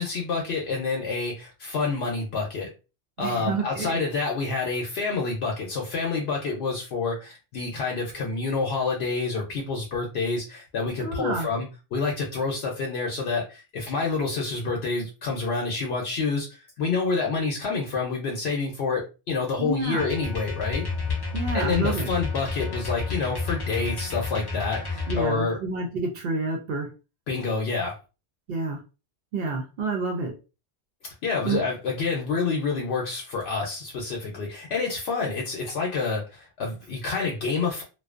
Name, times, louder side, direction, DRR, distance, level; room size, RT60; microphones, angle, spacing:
voice 1, 0.0-2.7 3.2-20.8 21.5-25.6 27.3-27.9 31.0-37.8, left 4 dB, 75° left, -1 dB, 0.8 m, -28 dB
voice 2, 3.2-4.0 11.0-11.5 19.6-20.1 21.3-22.1 25.1-26.9 28.5-28.8 29.3-30.3 31.4-31.7, right 3 dB, 70° right, 3 dB, 0.7 m, -29 dB
sound 1, 20.0-25.2, left 4 dB, 40° left, 0.3 m, -30 dB
2.6 x 2.1 x 2.4 m, 0.31 s
omnidirectional pair, 1.1 m